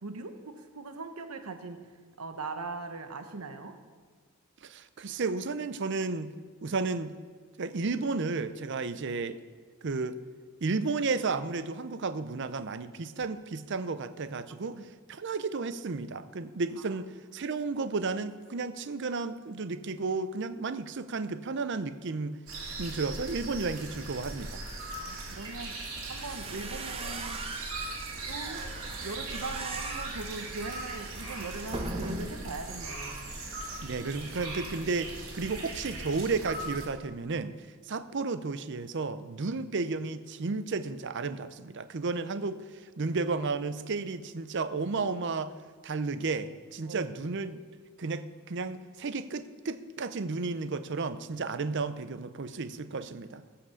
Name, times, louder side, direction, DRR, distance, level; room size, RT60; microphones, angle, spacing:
voice 1, 0.0-1.9 2.2-3.8 14.7-14.8 25.0-25.8 26.1-27.4 28.2-28.6 29.0-33.3 46.8-47.0, right 3 dB, 85° right, 7 dB, 0.9 m, -40 dB
voice 2, 4.6-6.3 6.6-7.2 7.6-9.4 9.8-10.2 10.6-14.8 15.1-22.4 22.8-24.6 33.8-37.6 37.9-45.5 45.8-47.6 48.0-53.4, right 4 dB, 55° right, 12 dB, 0.6 m, -33 dB
sound 1, 22.5-36.9, right 2 dB, 70° right, 2.8 m, -40 dB
sound 2, 26.0-32.5, right 2 dB, 25° right, 0.9 m, -39 dB
16.5 x 5.8 x 7.0 m, 1.5 s
head